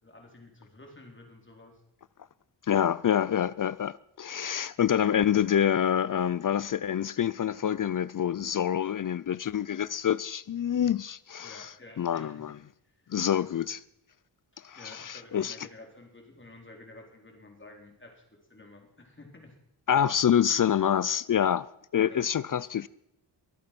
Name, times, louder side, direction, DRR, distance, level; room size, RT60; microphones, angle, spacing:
voice 1, 0.0-1.8 11.4-12.5 12.8-13.8 14.5-19.5 22.0-22.3, left 2 dB, 25° left, 4.0 m, -51 dB
voice 2, 2.7-11.7 12.0-12.5 13.1-13.8 14.6-15.6 19.9-21.7 21.9-22.9, left 9 dB, 50° left, 0.5 m, -26 dB
23.0 x 8.6 x 6.0 m
wide cardioid pair, 85°, 44 cm